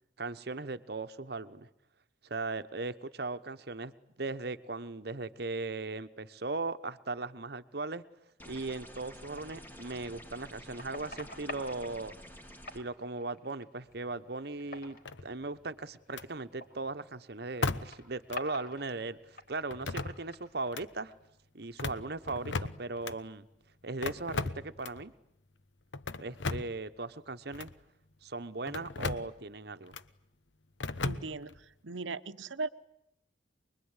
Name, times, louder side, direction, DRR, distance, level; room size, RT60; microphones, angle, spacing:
voice 1, 0.2-1.7 2.2-8.0 8.5-12.1 12.7-15.0 15.2-21.1 21.5-23.5 23.8-25.1 26.2-27.7 28.2-30.0, right 3 dB, 55° right, 12 dB, 1.1 m, -38 dB
sound 1, 8.4-12.8, equal, 10° left, 2.2 m, -50 dB
sound 2, 8.6-9.5 10.1-11.9 12.6-13.9 14.4-15.2 16.0-16.2 16.5-16.7 17.6-19.0 19.3-20.5 20.9-21.1, left 2 dB, 55° left, 4.8 m, -46 dB
sound 3, 15.0-15.6 16.1-16.3 17.6-18.0 18.3-18.4 19.7-20.4 20.7-20.9 21.6-23.2 24.0-25.0 25.9-26.8 27.5-27.7 28.7-29.3 29.9-30.1 30.8-31.6, left 3 dB, 75° left, 1.0 m, -36 dB
voice 2, 31.0-31.6 31.8-32.7, right 3 dB, 85° right, 13 dB, 1.0 m, -37 dB
25.0 x 22.0 x 9.8 m, 0.80 s
head